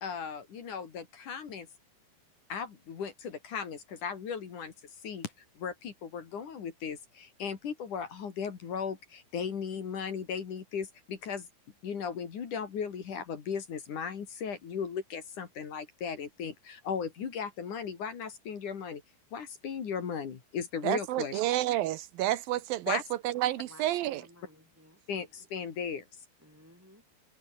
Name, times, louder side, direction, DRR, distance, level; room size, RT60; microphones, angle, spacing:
voice 1, 0.0-1.7 2.5-4.7 5.0-11.5 11.8-19.0 19.3-21.4 22.9-23.0 25.1-26.0, left 6 dB, 50° left, 3.6 m, -37 dB
voice 2, 20.8-23.0 23.2-24.2, right 14 dB, 80° right, 2.1 m, -29 dB
voice 3, 23.6-25.0 26.4-27.0, left 1 dB, 5° right, 5.4 m, -56 dB
omnidirectional pair, 5.2 m